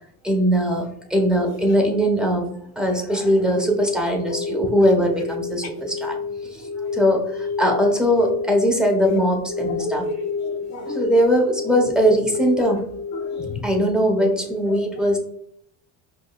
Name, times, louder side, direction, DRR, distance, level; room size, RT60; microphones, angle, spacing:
voice 1, 0.2-6.2 6.6-6.7 6.9-10.1 10.9-12.9 13.6-15.2, equal, ahead, 0 dB, 1.0 m, -20 dB
sound 1, 3.3-13.8, left 5 dB, 30° left, 0.6 m, -31 dB
voice 2, 9.8-10.9 13.1-13.7, left 2 dB, 50° left, 4 dB, 1.1 m, -32 dB
5.1 x 2.1 x 2.4 m, 0.69 s
supercardioid pair, 90°, 35 cm